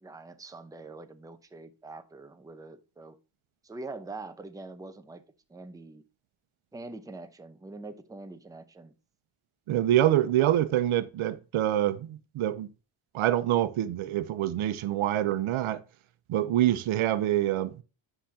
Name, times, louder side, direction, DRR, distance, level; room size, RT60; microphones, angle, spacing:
voice 1, 0.0-3.2 3.6-5.2 5.5-6.0 6.7-8.9, right 3 dB, 5° right, 0.7 m, -44 dB
voice 2, 9.7-12.7 13.1-15.8 16.3-17.7, right 12 dB, 75° right, 0.8 m, -26 dB
9.8 x 5.8 x 2.8 m
cardioid pair, 125°, 49 cm